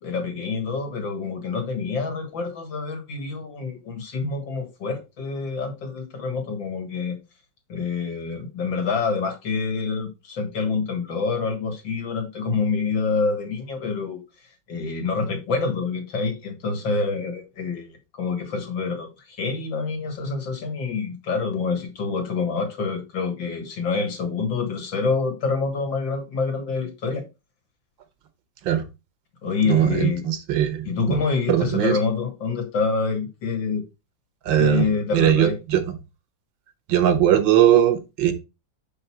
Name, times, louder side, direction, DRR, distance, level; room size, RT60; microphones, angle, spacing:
voice 1, 0.0-7.2 7.7-14.2 14.7-17.9 18.1-27.2 29.4-30.3 30.8-33.8 34.6-35.6, left 4 dB, 85° left, 2.4 m, -27 dB
voice 2, 29.7-31.2 31.5-32.0 34.5-34.9 35.1-35.8 36.9-38.3, right 11 dB, 85° right, 1.8 m, -19 dB
5.9 x 5.2 x 4.4 m
omnidirectional pair, 2.0 m